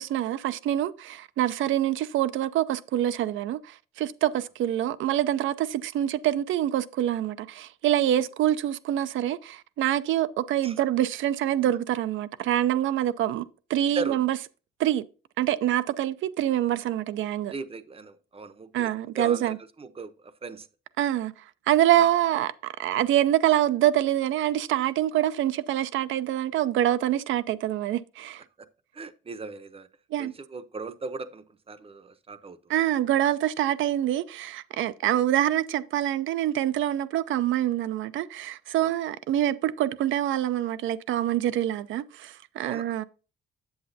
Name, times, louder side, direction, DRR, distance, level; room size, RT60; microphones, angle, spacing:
voice 1, 0.0-14.4 14.8-15.0 15.4-17.5 18.7-19.6 21.0-21.3 21.7-28.4 30.1-30.3 32.7-43.0, right 12 dB, 75° right, 0.5 m, -25 dB
voice 2, 17.5-20.7 21.9-22.0 28.6-28.7 28.9-29.9 30.2-32.7 38.8-38.9 42.6-42.9, right 3 dB, 30° right, 0.7 m, -38 dB
8.0 x 7.6 x 2.7 m
cardioid pair, 90°, 20 cm